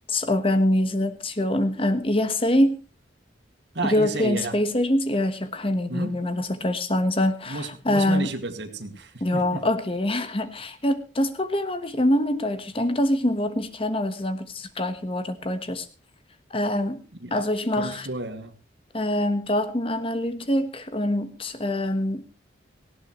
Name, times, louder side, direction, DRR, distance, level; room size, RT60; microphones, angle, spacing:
voice 1, 0.1-2.8 3.8-8.3 9.2-15.9 16.5-17.0 17.3-18.1 18.9-22.2, left 1 dB, 30° left, 11 dB, 1.2 m, -24 dB
voice 2, 3.7-4.6 5.9-6.1 7.5-9.6 17.2-17.5 17.7-18.5, right 2 dB, 65° right, 8 dB, 2.1 m, -32 dB
18.5 x 16.0 x 3.1 m, 0.32 s
head